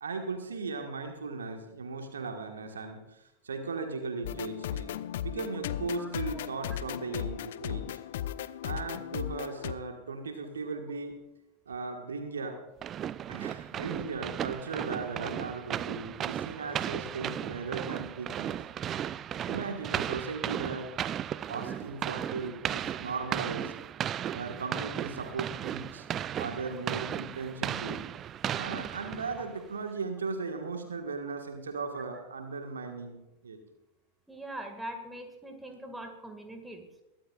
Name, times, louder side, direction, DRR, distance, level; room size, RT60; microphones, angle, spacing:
voice 1, 0.0-5.0 5.2-8.0 8.6-11.2 11.7-12.6 13.3-18.6 19.5-21.0 21.5-23.7 24.3-26.1 26.4-28.0 28.5-33.6, right 4 dB, 70° right, 5 dB, 1.6 m, -37 dB
sound 1, 4.2-9.7, left 11 dB, 55° left, 0.4 m, -36 dB
voice 2, 6.0-6.5 22.2-22.3 34.3-37.0, right 1 dB, 5° right, 5 dB, 2.0 m, -43 dB
sound 2, 12.8-29.6, right 10 dB, 30° right, 0.4 m, -35 dB
22.5 x 12.5 x 2.4 m, 0.94 s
figure-of-eight pair, 90°, 0 cm